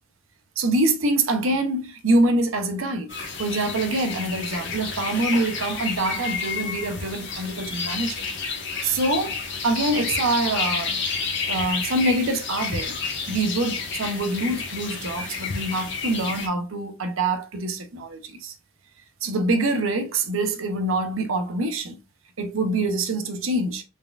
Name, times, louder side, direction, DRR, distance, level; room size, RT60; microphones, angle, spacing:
voice 1, 0.6-3.1 3.4-8.2 8.8-10.9 11.5-13.0 13.3-18.5 19.2-22.0 22.4-23.8, right 2 dB, 85° right, 0.7 m, -25 dB
sound 1, 3.1-16.5, left 5 dB, 60° left, 1.1 m, -30 dB
4.1 x 3.6 x 2.3 m
head